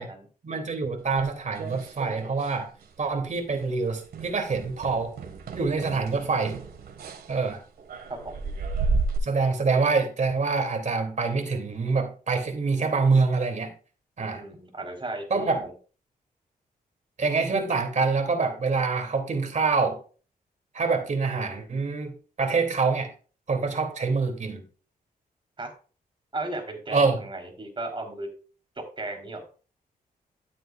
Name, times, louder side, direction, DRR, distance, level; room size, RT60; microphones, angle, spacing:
voice 1, 0.4-2.7 3.0-5.1 5.5-6.6 7.3-7.6 9.2-13.7 14.2-14.4 15.3-15.6 17.2-20.0 20.7-23.1 23.5-24.6 26.9-27.2, right 4 dB, 50° right, 3 dB, 3.0 m, -25 dB
sound 1, 1.1-2.6 2.8-3.2 3.5-3.7 4.1-9.2, right 4 dB, 90° right, 2.0 m, -33 dB
voice 2, 14.3-15.7 25.6-25.7 26.3-28.3 29.0-29.4, right 2 dB, 30° right, 3 dB, 4.1 m, -35 dB
13.0 x 7.5 x 2.5 m, 0.38 s
cardioid pair, 85°, 16 cm